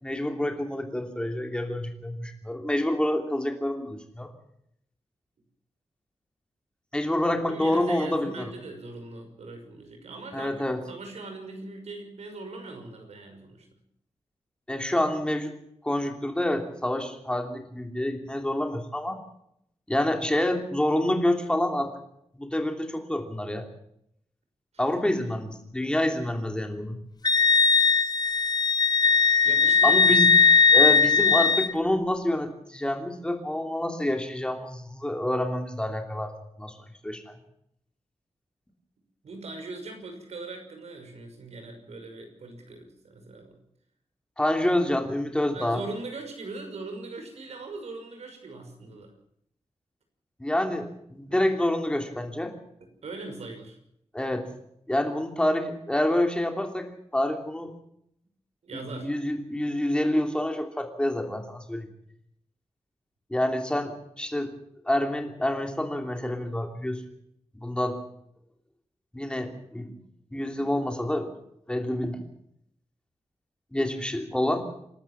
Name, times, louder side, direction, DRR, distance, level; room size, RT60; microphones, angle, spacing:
voice 1, 0.0-4.3 6.9-8.5 10.3-10.8 14.7-15.5 15.8-19.2 19.9-21.9 22.3-23.7 24.8-27.0 29.8-30.3 30.7-36.3 36.6-36.7 37.0-37.3 44.4-45.8 50.4-52.5 54.1-54.5 54.9-57.7 58.7-61.9 63.3-64.5 64.8-67.0 67.5-68.0 69.1-69.9 70.3-71.3 71.7-72.2 73.7-74.7, left 1 dB, 10° left, 4 dB, 2.9 m, -27 dB
voice 2, 7.5-10.5 10.8-13.7 24.7-24.8 29.4-30.1 30.7-31.0 39.2-43.6 45.5-49.1 51.3-51.4 52.8-53.8 58.6-59.1, right 3 dB, 80° right, 5 dB, 5.9 m, -40 dB
Wind instrument woodwind instrument, 27.2-31.7, left 5 dB, 40° left, 0.8 m, -19 dB
28.5 x 12.5 x 7.5 m, 0.74 s
wide cardioid pair, 170°, 11 cm